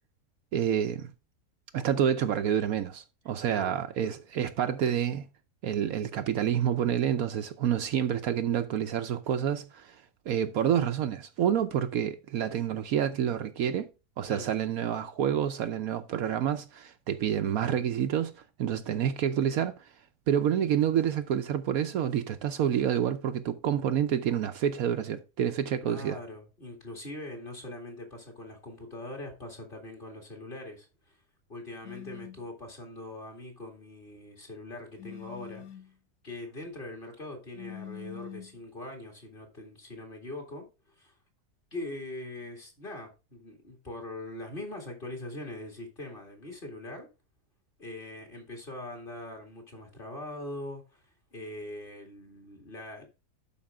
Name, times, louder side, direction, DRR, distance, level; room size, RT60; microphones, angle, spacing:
voice 1, 0.5-1.1 1.7-5.3 5.6-10.0 10.3-13.9 14.2-18.3 18.6-19.7 20.3-26.2, right 9 dB, 70° right, 1.1 m, -28 dB
voice 2, 3.5-3.8 14.3-14.5 25.8-31.2 31.5-35.8 36.2-41.1 41.7-47.1 47.8-51.0 51.3-53.1, left 1 dB, 35° left, 2.4 m, -42 dB
sound 1, 31.8-32.5 35.0-35.9 37.5-38.6, left 9 dB, 75° left, 1.4 m, -44 dB
11.5 x 5.0 x 3.5 m
omnidirectional pair, 1.7 m